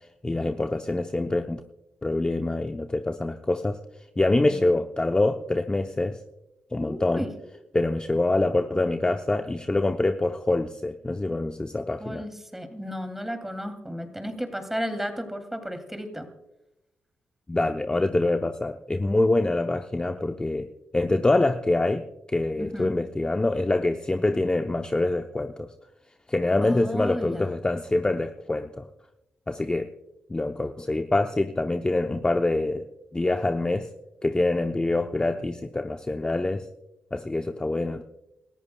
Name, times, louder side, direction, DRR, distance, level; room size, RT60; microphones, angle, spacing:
voice 1, 0.2-1.6 2.0-3.8 4.2-6.2 6.7-7.3 7.7-12.2 17.5-25.7 26.3-28.9 29.5-29.9 30.3-32.9 33.1-33.9 34.2-36.7 37.1-38.0, left 2 dB, 20° left, 6 dB, 0.7 m, -25 dB
voice 2, 6.8-7.3 12.0-16.3 22.6-22.9 26.6-27.5, equal, 5° right, 7 dB, 2.6 m, -33 dB
27.5 x 14.0 x 2.3 m, 0.90 s
cardioid pair, 65°, 4 cm